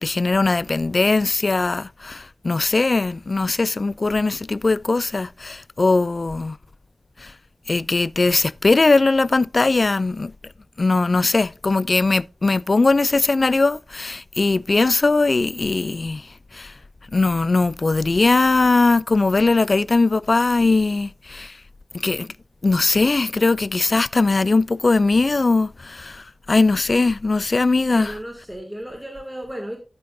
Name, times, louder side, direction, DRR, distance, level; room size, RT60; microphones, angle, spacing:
voice 1, 0.0-6.6 7.2-7.3 7.7-10.3 10.8-16.7 17.1-21.6 21.9-22.3 22.6-28.2, left 3 dB, 55° left, 0.3 m, -20 dB
voice 2, 27.9-29.8, equal, 5° right, 2.3 m, -34 dB
10.5 x 9.0 x 2.6 m
cardioid pair, 45°, 0 cm